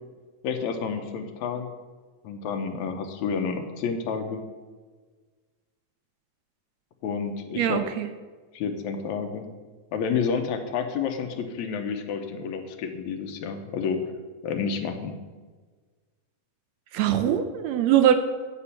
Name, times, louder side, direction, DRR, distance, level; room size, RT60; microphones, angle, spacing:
voice 1, 0.4-1.7 2.2-4.4 7.0-7.8 8.5-9.5 9.9-14.0 14.4-15.2, left 6 dB, 75° left, 6 dB, 2.1 m, -30 dB
voice 2, 7.6-8.1 16.9-18.1, right 10 dB, 75° right, 9 dB, 1.7 m, -22 dB
8.6 x 8.3 x 5.7 m, 1.4 s
omnidirectional pair, 3.4 m